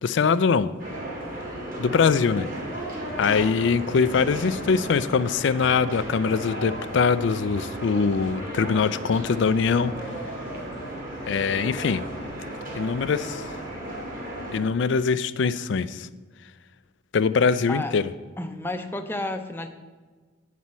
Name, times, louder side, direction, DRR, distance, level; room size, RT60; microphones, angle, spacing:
voice 1, 0.0-0.7 1.8-2.5 3.2-9.9 11.3-12.0 12.8-13.5 14.5-16.1 17.1-18.0, left 5 dB, 60° left, 15 dB, 0.4 m, -22 dB
sound 1, 0.8-14.6, right 1 dB, 45° right, 1.9 m, -35 dB
voice 2, 18.4-19.7, left 1 dB, 10° left, 6 dB, 0.5 m, -32 dB
9.6 x 4.2 x 7.3 m, 1.4 s
head